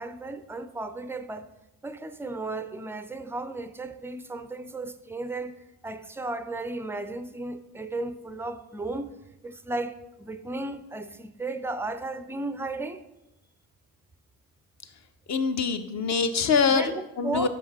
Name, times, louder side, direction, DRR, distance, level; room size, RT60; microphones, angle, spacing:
voice 1, 0.0-1.5 1.8-5.6 5.8-9.1 9.4-13.0 16.7-17.5, right 2 dB, 5° right, 0.4 m, -34 dB
voice 2, 15.3-16.9 17.2-17.5, left 5 dB, 40° left, 0.9 m, -24 dB
6.8 x 5.5 x 4.3 m
hypercardioid pair, 60°, 43 cm